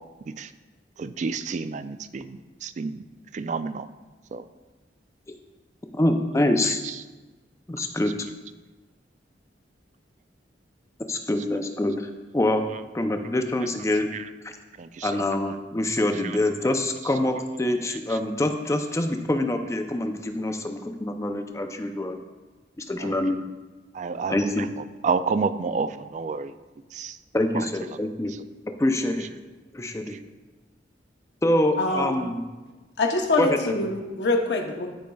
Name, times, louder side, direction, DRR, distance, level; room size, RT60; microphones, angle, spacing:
voice 1, 1.0-3.0 3.3-3.9 4.3-4.5 6.6-7.0 11.4-11.5 12.7-12.8 14.1-14.3 14.8-15.6 16.1-16.4 17.0-17.2 17.9-18.2 23.0-23.2 23.9-26.5 26.9-27.2 27.5-28.0 28.3-28.4 29.2-29.3 30.1-30.2, right 5 dB, 40° right, 12 dB, 0.3 m, -31 dB
voice 2, 5.9-6.8 7.7-8.1 11.1-12.7 12.9-14.1 14.4-14.6 15.0-22.2 22.8-23.4 24.3-24.7 27.3-28.3 28.8-29.3 29.7-30.1 31.4-32.4 33.4-33.9, left 1 dB, 15° left, 6 dB, 0.5 m, -25 dB
voice 3, 31.8-32.1 33.0-34.9, left 2 dB, 65° left, 3 dB, 0.8 m, -24 dB
13.5 x 5.2 x 2.3 m, 1.2 s
head